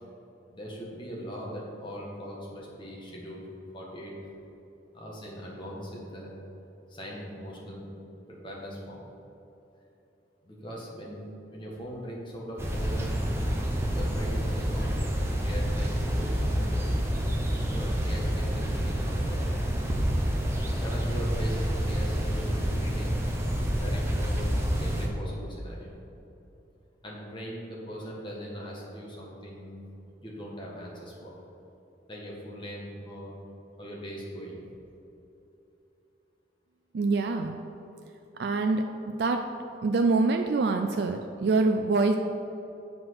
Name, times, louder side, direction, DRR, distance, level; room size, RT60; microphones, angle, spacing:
voice 1, 0.5-4.1 4.9-6.4 6.9-7.9 8.3-9.1 10.4-13.1 13.9-14.9 15.4-17.2 17.6-19.5 20.8-23.2 23.6-24.4 24.8-26.0 27.0-29.8 30.2-31.3 32.1-33.3 33.8-34.6, equal, 25° left, -3 dB, 1.6 m, -40 dB
sound 1, 12.6-25.1, equal, 15° right, 0.8 m, -28 dB
voice 2, 36.9-37.6 38.4-38.8 39.2-39.4 39.8-42.2, right 3 dB, 60° right, 5 dB, 0.4 m, -25 dB
7.7 x 6.2 x 4.7 m, 2.9 s
head